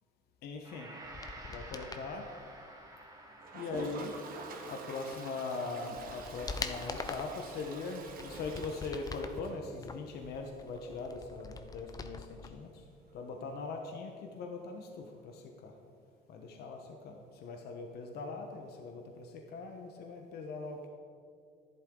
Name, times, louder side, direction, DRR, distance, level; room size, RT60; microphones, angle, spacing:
voice 1, 0.4-0.9 1.5-2.2 3.5-4.1 4.7-12.7 13.1-15.3 15.6-15.7 16.3-16.8 17.0-17.1 17.4-19.2 19.5-20.9, left 3 dB, 70° left, 3 dB, 1.1 m, -40 dB
Gong, 0.6-9.8, right 1 dB, 20° right, 1.6 m, -53 dB
sound 1, 1.0-2.1 5.1-5.2 5.7-7.4 7.9-9.4 9.8-12.5 12.8-12.9, left 4 dB, 20° left, 0.6 m, -43 dB
Toilet flush, 3.4-10.1 10.4-10.5 10.7-10.8 11.1-11.2 13.7-13.8 15.1-15.2, right 4 dB, 60° right, 1.4 m, -47 dB
12.0 x 11.0 x 3.9 m, 2.3 s
cardioid pair, 110°, 17 cm